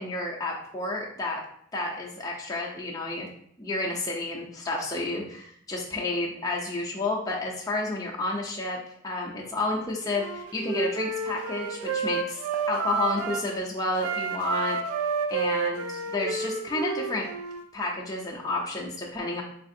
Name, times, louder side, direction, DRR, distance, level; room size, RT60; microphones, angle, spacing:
voice 1, 0.0-1.4 1.7-3.3 3.6-8.8 9.0-12.4 12.7-14.8 15.3-17.3 17.7-19.4, left 2 dB, 15° left, -3 dB, 0.4 m, -30 dB
Wind instrument woodwind instrument, 10.1-13.5 13.9-17.6, right 4 dB, 90° right, 0.4 m, -30 dB
4.2 x 2.4 x 2.6 m, 0.65 s
head